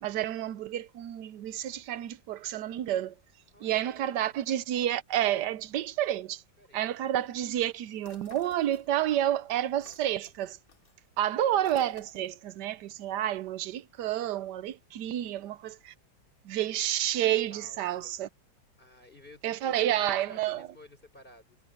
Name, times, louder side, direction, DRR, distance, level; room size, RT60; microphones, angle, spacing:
voice 1, 0.0-3.1 3.6-6.4 6.7-10.6 11.2-15.9 16.4-18.3 19.4-20.7, right 12 dB, 70° right, 1.2 m, -30 dB
voice 2, 3.5-4.2 6.6-6.8 15.2-15.3 17.5-18.2 18.8-21.6, left 2 dB, 25° left, 4.3 m, -53 dB
sound 1, 8.0-9.2 9.5-12.5, left 3 dB, 45° left, 3.3 m, -54 dB
omnidirectional pair, 2.0 m